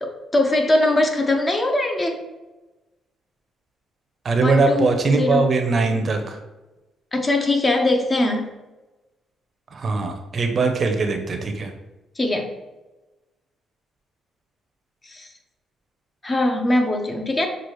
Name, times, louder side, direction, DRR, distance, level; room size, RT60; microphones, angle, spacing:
voice 1, 0.0-2.2 4.4-4.9 5.2-5.4 7.1-8.5 12.2-12.5 15.0-15.3 16.2-17.5, left 2 dB, 25° left, 3 dB, 0.7 m, -21 dB
voice 2, 4.2-6.4 9.7-11.7, right 3 dB, 45° right, 5 dB, 0.6 m, -21 dB
6.1 x 2.4 x 3.1 m, 1.1 s
cardioid pair, 90°, 0 cm